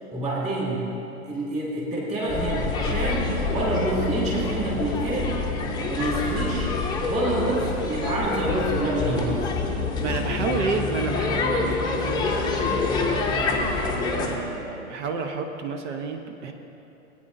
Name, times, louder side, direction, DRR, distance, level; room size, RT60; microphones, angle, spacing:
voice 1, 0.1-0.8 1.2-5.3 5.9-6.7 7.1-9.4 10.0-10.2, right 2 dB, 15° right, -6 dB, 2.4 m, -27 dB
sound 1, 2.3-14.4, left 3 dB, 10° left, 0.7 m, -26 dB
voice 2, 10.0-16.5, right 4 dB, 55° right, 5 dB, 1.0 m, -31 dB
18.0 x 8.9 x 2.7 m, 3.0 s
hypercardioid pair, 120°, 44 cm